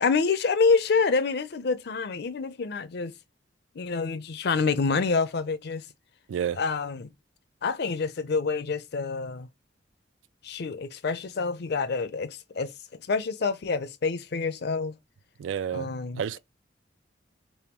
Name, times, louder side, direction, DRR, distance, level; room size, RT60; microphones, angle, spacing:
voice 1, 0.0-3.1 3.8-5.8 6.6-7.1 7.6-9.5 10.4-12.7 13.1-14.9 15.7-16.2, left 4 dB, 60° left, 0.5 m, -27 dB
voice 2, 6.3-6.6 15.4-16.4, right 8 dB, 80° right, 0.3 m, -30 dB
3.5 x 2.2 x 4.4 m
head